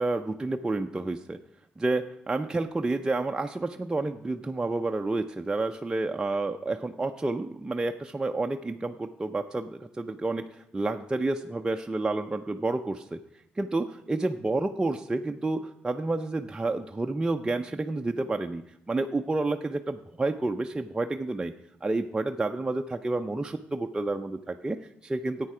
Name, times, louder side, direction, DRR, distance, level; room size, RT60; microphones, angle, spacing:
voice 1, 0.0-1.4 1.8-13.2 13.6-21.5 21.8-25.5, right 2 dB, 20° right, 4 dB, 0.6 m, -30 dB
10.0 x 8.4 x 4.9 m, 0.80 s
cardioid pair, 70°, 4 cm